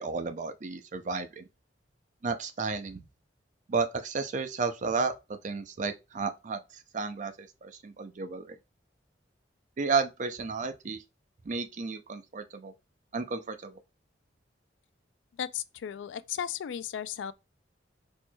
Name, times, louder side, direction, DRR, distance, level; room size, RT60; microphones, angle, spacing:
voice 1, 0.0-1.5 2.2-3.0 3.7-5.1 5.4-6.6 6.9-8.5 9.8-11.0 11.5-12.7 13.1-13.7, right 4 dB, 45° right, 0.5 m, -32 dB
voice 2, 15.4-17.3, left 9 dB, 80° left, 0.3 m, -35 dB
4.4 x 4.4 x 2.2 m
head